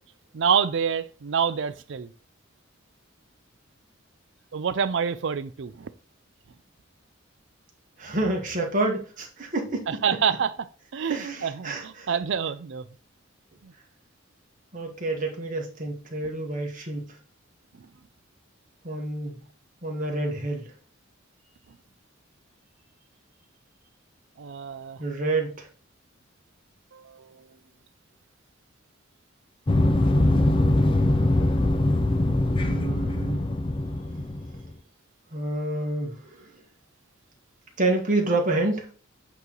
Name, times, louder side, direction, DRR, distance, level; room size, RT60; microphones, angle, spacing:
voice 1, 0.3-2.1 4.5-5.9 9.9-10.5 10.9-12.8 13.6-13.7 24.4-25.0 26.9-27.3, right 7 dB, 65° right, 0.4 m, -27 dB
voice 2, 8.0-10.0 11.1-12.1 14.7-17.1 18.8-19.4 19.8-20.7 25.0-25.7 32.6-33.4 35.3-36.1 37.8-38.9, right 2 dB, 40° right, 1.3 m, -28 dB
sound 1, 29.7-34.7, left 1 dB, 25° left, 0.5 m, -22 dB
8.2 x 3.0 x 3.9 m
head